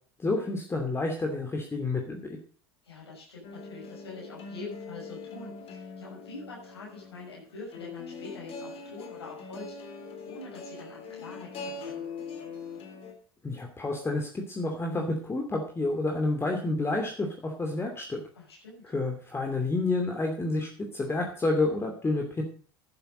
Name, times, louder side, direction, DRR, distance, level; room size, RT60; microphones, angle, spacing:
voice 1, 0.2-2.2 13.4-18.2 18.8-22.4, left 2 dB, 20° left, 2 dB, 2.7 m, -29 dB
voice 2, 2.8-12.1 18.3-18.8, left 3 dB, 85° left, -4 dB, 6.4 m, -45 dB
sound 1, 3.4-13.1, left 4 dB, 45° left, 3.5 m, -42 dB
11.5 x 10.5 x 5.2 m, 0.43 s
hypercardioid pair, 85°, 13 cm